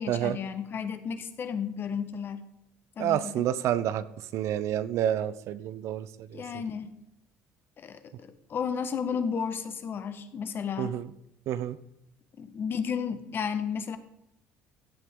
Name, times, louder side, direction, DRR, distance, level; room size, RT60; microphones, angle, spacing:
voice 1, 0.0-2.5 3.0-3.4 6.3-7.0 7.8-11.0 12.4-14.0, left 6 dB, 45° left, 10 dB, 1.2 m, -33 dB
voice 2, 3.0-4.0 4.3-6.1 6.3-6.4 10.8-11.0 11.5-11.8, right 11 dB, 65° right, 15 dB, 0.6 m, -28 dB
16.0 x 8.3 x 3.7 m, 0.84 s
supercardioid pair, 90°, 5 cm